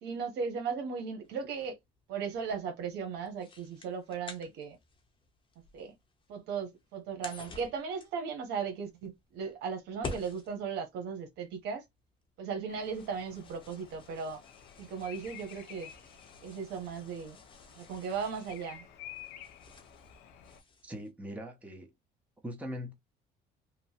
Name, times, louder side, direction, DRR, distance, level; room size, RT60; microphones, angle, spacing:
voice 1, 0.0-1.8 2.1-4.8 5.7-5.9 6.3-11.8 12.4-14.4 14.8-15.9 16.4-17.4 17.8-18.8, right 6 dB, 85° right, 0.9 m, -37 dB
sound 1, 1.2-21.1, left 3 dB, 30° left, 0.8 m, -51 dB
Bird vocalization bird call bird song, 12.7-20.6, left 10 dB, 80° left, 0.6 m, -52 dB
voice 2, 20.8-21.9 22.4-22.9, equal, 10° right, 0.8 m, -41 dB
2.9 x 2.1 x 2.7 m
cardioid pair, 110°, 17 cm